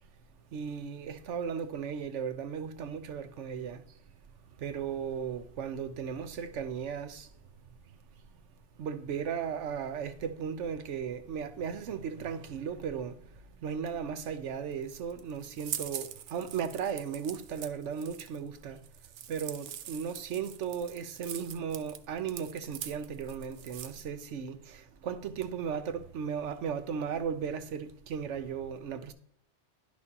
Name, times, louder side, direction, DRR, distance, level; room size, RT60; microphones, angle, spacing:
voice 1, 0.5-3.9 4.6-7.3 8.8-18.8 19.3-29.1, right 7 dB, 85° right, 1.1 m, -36 dB
sound 1, 14.7-24.1, right 10 dB, 65° right, 0.8 m, -43 dB
11.0 x 6.1 x 2.8 m
omnidirectional pair, 1.2 m